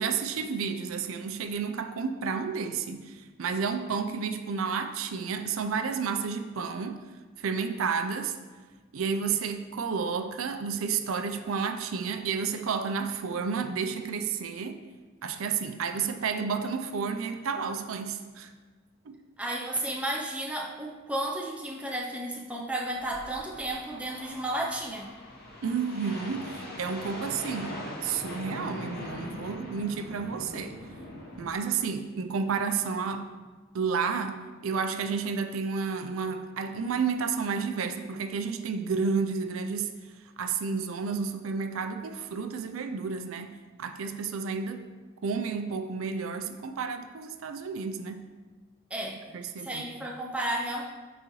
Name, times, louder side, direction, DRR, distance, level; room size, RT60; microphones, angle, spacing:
voice 1, 0.0-7.0 7.4-8.4 8.9-14.8 15.2-18.5 19.1-19.2 25.6-30.8 31.4-33.3 33.7-39.9 40.4-44.8 45.2-48.3 49.3-49.8, right 5 dB, 80° right, 7 dB, 0.5 m, -31 dB
voice 2, 19.4-25.1 48.9-50.8, right 1 dB, 5° right, -1 dB, 0.5 m, -33 dB
sound 1, 22.9-31.5, left 1 dB, 45° left, 1.1 m, -41 dB
9.3 x 4.0 x 3.1 m, 1.3 s
head